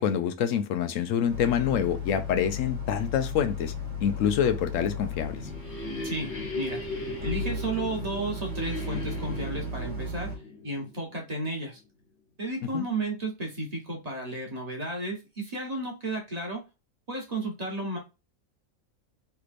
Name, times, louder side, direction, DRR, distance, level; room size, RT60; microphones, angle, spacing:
voice 1, 0.0-3.7 4.0-5.4 12.7-12.8, left 8 dB, 70° left, 0.9 m, -26 dB
Boat Water vehicle, 1.3-10.4, left 2 dB, 50° right, 1.6 m, -36 dB
sound 1, 5.0-11.5, left 3 dB, 50° left, 1.3 m, -38 dB
voice 2, 6.0-6.8 7.2-10.3 10.6-11.8 12.4-16.6 17.1-18.0, right 2 dB, 30° right, 1.1 m, -33 dB
3.3 x 3.1 x 2.4 m
omnidirectional pair, 1.5 m